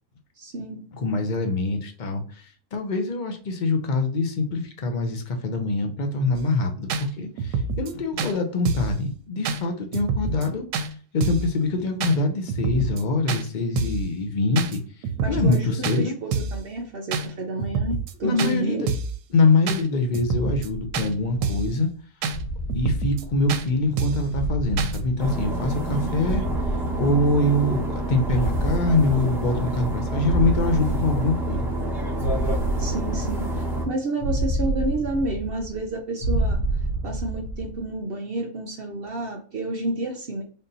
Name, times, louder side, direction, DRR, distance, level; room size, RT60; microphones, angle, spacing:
voice 1, 0.4-0.8 15.2-18.8 25.9-26.1 32.8-36.6 37.0-40.4, right 2 dB, 65° right, 2 dB, 0.5 m, -30 dB
voice 2, 0.9-16.1 18.2-18.9 19.3-21.9 22.7-31.7, left 2 dB, 65° left, 4 dB, 0.4 m, -24 dB
sound 1, 6.3-6.4 6.9-7.0 7.4-7.9 8.2-8.3 8.7-9.0 9.5-9.6 9.9-10.5 10.7-10.9 11.2-11.5 12.0-12.2 12.5-13.0 13.3-13.4 13.8-14.1 14.6-14.8 15.0-15.6 15.8-16.0 16.3-16.6 17.1-17.3 17.6-18.1 18.4-18.5 18.9-19.2 19.7-19.8 20.1-20.7 20.9-21.1 21.4-21.7 22.2-22.4 22.7-23.2 23.5-23.6 24.0-24.3 24.8-25.0, right 5 dB, 85° right, 1.1 m, -27 dB
sound 2, 20.7-21.7 22.3-23.8 24.3-25.9 26.2-27.8 28.2-29.9 30.2-31.9 32.2-33.8 34.2-35.9 36.2-37.8, right 1 dB, 85° left, 1.4 m, -29 dB
sound 3, 25.2-33.9, right 1 dB, ahead, 0.7 m, -28 dB
3.6 x 2.7 x 3.8 m, 0.42 s
omnidirectional pair, 1.6 m